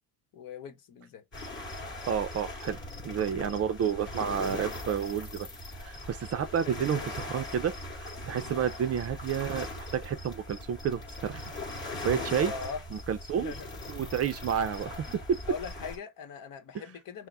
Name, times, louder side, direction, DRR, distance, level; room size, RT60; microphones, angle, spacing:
voice 1, 0.3-1.2 6.6-7.1 8.4-8.6 12.4-12.8 13.3-13.7 15.5-17.3, left 6 dB, 55° left, 1.1 m, -41 dB
sound 1, 1.3-16.0, left 2 dB, 25° left, 3.3 m, -40 dB
voice 2, 2.1-2.8 3.0-5.5 5.8-11.4 11.9-12.5 12.9-13.5 13.9-15.0 15.3-15.4, right 8 dB, 35° right, 0.5 m, -30 dB
5.7 x 2.1 x 4.2 m
cardioid pair, 140°, 41 cm